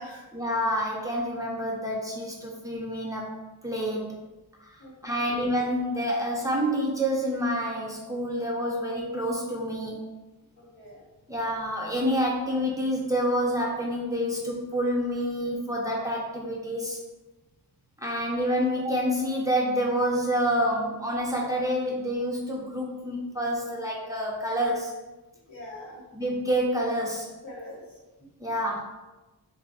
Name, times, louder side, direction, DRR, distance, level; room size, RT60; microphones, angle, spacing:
voice 1, 0.3-3.4 3.6-4.1 4.6-10.0 11.3-17.0 18.0-24.9 26.1-27.3 28.4-28.9, equal, 10° right, -3 dB, 0.6 m, -28 dB
voice 2, 4.8-5.4 10.6-11.0 25.5-26.0 27.4-28.0, left 1 dB, 85° left, -6 dB, 1.4 m, -43 dB
2.7 x 2.5 x 4.0 m, 1.1 s
wide cardioid pair, 115°, 40 cm